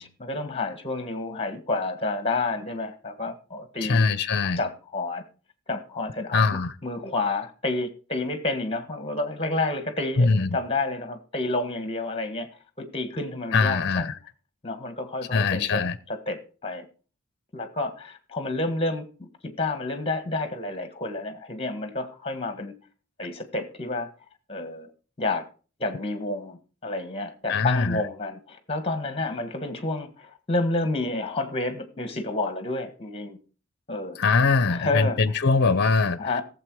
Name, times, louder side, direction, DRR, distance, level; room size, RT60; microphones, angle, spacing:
voice 1, 0.0-4.0 4.6-5.2 5.7-6.4 6.8-12.5 12.8-14.1 14.6-15.8 16.1-16.9 17.5-22.7 23.2-24.1 24.5-24.9 25.2-25.5 25.8-33.4 33.9-34.2 34.7-35.2 36.2-36.4, left 2 dB, 25° left, 1.6 m, -30 dB
voice 2, 3.8-4.6 6.3-6.7 10.2-10.6 13.5-14.2 15.3-16.0 27.5-28.0 34.2-36.4, left 4 dB, 50° left, 0.8 m, -22 dB
16.0 x 7.4 x 4.8 m
head